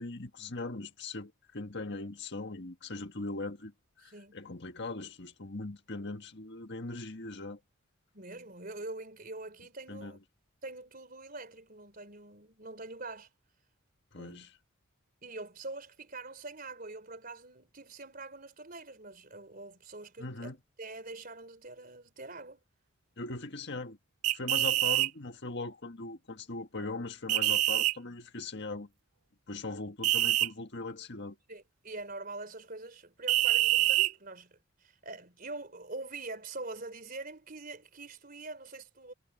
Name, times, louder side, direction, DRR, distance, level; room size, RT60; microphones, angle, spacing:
voice 1, 0.0-7.6 9.9-10.2 14.1-14.6 20.2-20.6 23.2-24.0 24.3-28.9 29.5-31.4, left 2 dB, 50° left, 1.7 m, -40 dB
voice 2, 4.0-4.4 8.1-10.2 10.6-13.3 14.2-14.5 15.2-20.5 20.8-22.6 24.6-24.8 31.5-39.1, right 2 dB, 40° right, 4.1 m, -44 dB
sound 1, 24.2-25.1 27.3-27.9 30.0-30.5 33.3-34.1, right 15 dB, 90° right, 0.5 m, -25 dB
head